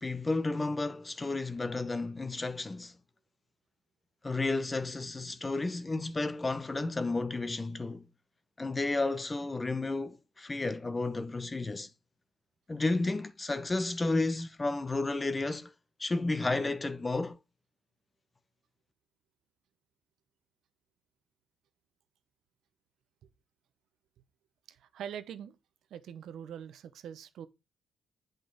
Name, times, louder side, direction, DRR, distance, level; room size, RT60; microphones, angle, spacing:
voice 1, 0.0-2.9 4.2-8.0 8.6-11.9 12.7-15.7 16.0-17.4, left 2 dB, 20° left, 0.7 m, -32 dB
voice 2, 24.7-25.6 25.9-27.5, right 9 dB, 75° right, 0.8 m, -43 dB
8.2 x 5.3 x 3.9 m
cardioid pair, 90°, 0 cm